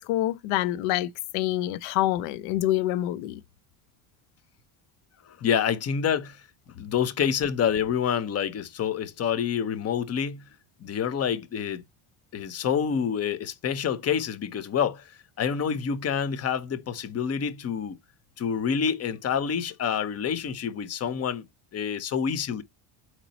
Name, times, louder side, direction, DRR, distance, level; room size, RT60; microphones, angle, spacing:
voice 1, 0.0-3.4, left 14 dB, 85° left, 0.5 m, -26 dB
voice 2, 5.3-6.4 6.8-10.4 10.8-11.8 12.3-18.0 18.4-21.4 21.7-22.6, left 7 dB, 30° left, 0.7 m, -27 dB
4.1 x 3.0 x 4.0 m
cardioid pair, 105°, 49 cm